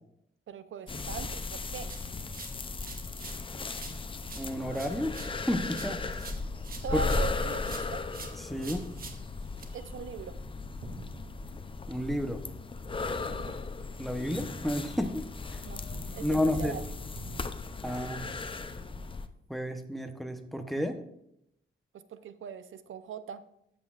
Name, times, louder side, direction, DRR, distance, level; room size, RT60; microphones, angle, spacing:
voice 1, 0.5-1.9 6.8-8.1 9.7-10.4 13.3-13.6 15.6-15.8 16.1-16.9 21.9-23.4, right 7 dB, 70° right, 12 dB, 0.7 m, -40 dB
sound 1, 0.9-19.3, left 3 dB, 25° left, 0.6 m, -36 dB
sound 2, 1.9-3.4 3.7-7.3 7.6-9.6, right 4 dB, 45° right, 1.4 m, -47 dB
voice 2, 4.4-6.2 6.9-7.0 8.4-8.9 11.9-12.4 14.0-15.3 16.2-16.8 17.8-18.3 19.5-21.0, equal, ahead, 5 dB, 0.9 m, -31 dB
sound 3, 10.8-13.6 13.8-14.1 14.6-15.4 15.7-19.9, right 1 dB, 90° right, 2.6 m, -52 dB
13.0 x 8.5 x 2.5 m, 0.76 s
wide cardioid pair, 130°, 21 cm